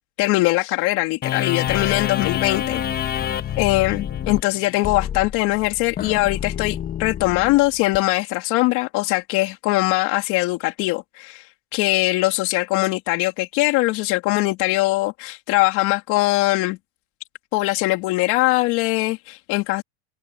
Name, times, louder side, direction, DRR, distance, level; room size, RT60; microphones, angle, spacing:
voice 1, 0.2-2.8 3.6-11.5 11.7-16.8 17.5-19.8, left 21 dB, 55° left, 3.3 m, -21 dB
sound 1, 1.2-8.0, left 10 dB, 25° left, 1.4 m, -27 dB
supercardioid pair, 145°, 36 cm